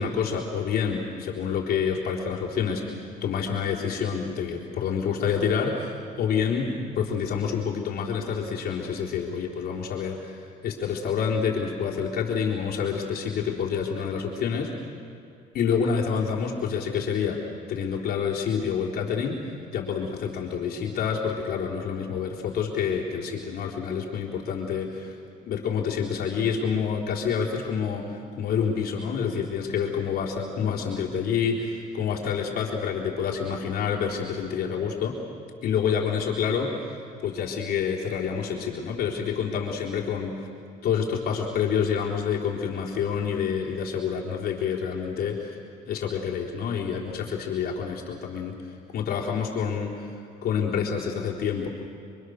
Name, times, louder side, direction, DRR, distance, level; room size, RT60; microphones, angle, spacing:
voice 1, 0.0-14.7 15.5-19.4 19.7-25.1 25.5-35.2 35.6-40.5 40.8-45.6 45.9-48.5 48.9-50.1 50.4-51.7, left 6 dB, 70° left, -2 dB, 3.9 m, -28 dB
30.0 x 24.5 x 6.6 m, 2.4 s
cardioid pair, 110°, 17 cm